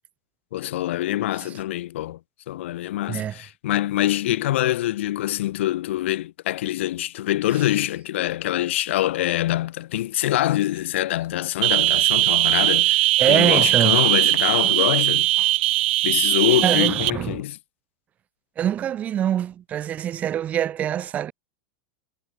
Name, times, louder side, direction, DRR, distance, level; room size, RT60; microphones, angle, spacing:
voice 1, 0.5-2.2 2.5-13.0 13.3-15.3 16.0-17.6, left 14 dB, 80° left, 2.3 m, -24 dB
voice 2, 3.1-3.4 13.2-14.0 16.6-17.4 18.6-21.3, right 10 dB, 20° right, 2.6 m, -24 dB
sound 1, 11.6-17.1, right 17 dB, 70° right, 0.3 m, -20 dB
supercardioid pair, 165°, 6 cm